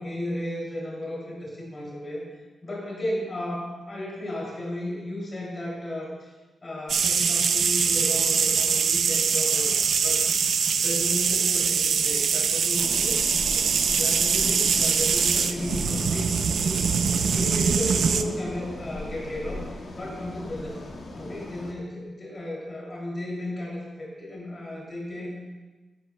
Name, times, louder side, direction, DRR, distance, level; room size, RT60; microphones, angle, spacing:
voice 1, 0.0-2.2 2.6-6.3 6.6-10.2 10.7-16.9 17.2-19.7 19.9-20.8 21.1-25.3, left 1 dB, 30° left, -4 dB, 2.8 m, -34 dB
sound 1, 6.9-18.2, right 6 dB, 65° right, 0.5 m, -23 dB
sound 2, 12.8-21.7, left 2 dB, 50° left, 1.7 m, -38 dB
16.5 x 11.0 x 2.2 m, 1.2 s
wide cardioid pair, 155°, 0 cm